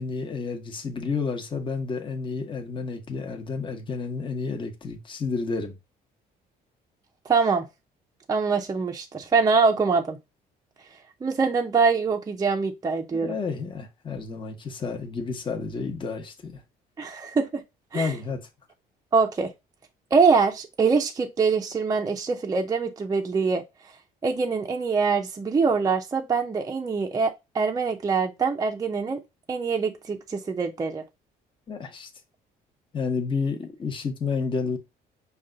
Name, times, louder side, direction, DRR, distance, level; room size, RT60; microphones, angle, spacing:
voice 1, 0.0-5.8 13.1-16.6 17.9-18.4 31.7-32.1 32.9-34.8, left 4 dB, 30° left, 0.9 m, -30 dB
voice 2, 7.3-7.7 8.3-10.2 11.2-13.4 17.0-17.6 17.9-18.1 19.1-19.5 20.1-23.6 24.2-29.2 29.5-31.0, right 5 dB, 20° right, 0.5 m, -24 dB
5.3 x 2.3 x 3.7 m
cardioid pair, 110°, 17 cm